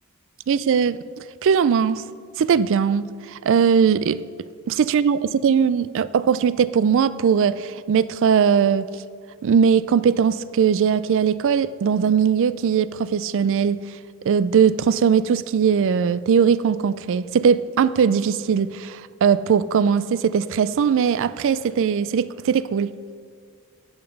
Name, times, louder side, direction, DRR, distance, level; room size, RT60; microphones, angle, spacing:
voice 1, 0.5-1.0 1.4-2.0 2.4-4.2 4.7-8.9 9.4-13.8 14.2-22.9, right 7 dB, 60° right, 0.3 m, -20 dB
10.0 x 7.9 x 5.2 m
head